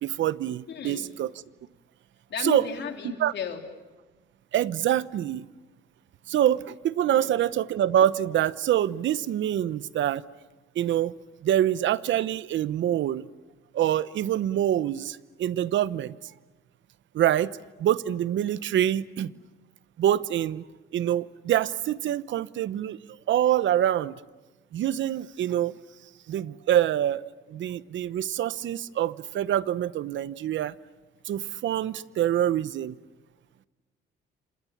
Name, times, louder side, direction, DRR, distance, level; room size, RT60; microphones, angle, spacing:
voice 1, 0.0-1.3 2.4-2.7 3.2-3.3 4.5-5.5 6.3-10.2 10.7-11.1 11.4-13.3 13.7-16.2 17.1-19.3 20.0-20.6 20.9-23.0 23.3-24.1 24.7-25.8 26.3-27.2 27.5-30.7 31.3-32.9, right 11 dB, 70° right, 17 dB, 0.9 m, -25 dB
voice 2, 0.7-1.0 2.3-3.6 7.1-7.3, left 7 dB, 60° left, 4 dB, 3.8 m, -34 dB
29.5 x 26.5 x 7.3 m, 1.2 s
cardioid pair, 90°, 20 cm